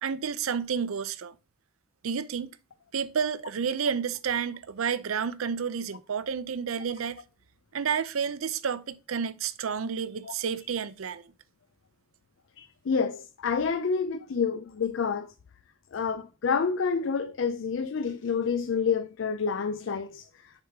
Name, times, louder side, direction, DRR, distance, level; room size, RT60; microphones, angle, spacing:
voice 1, 0.0-1.3 2.0-2.5 2.9-7.2 7.7-11.2, right 6 dB, 85° right, 0.5 m, -30 dB
voice 2, 12.6-15.3 15.9-20.3, left 5 dB, 65° left, 0.4 m, -28 dB
6.6 x 4.8 x 3.5 m
head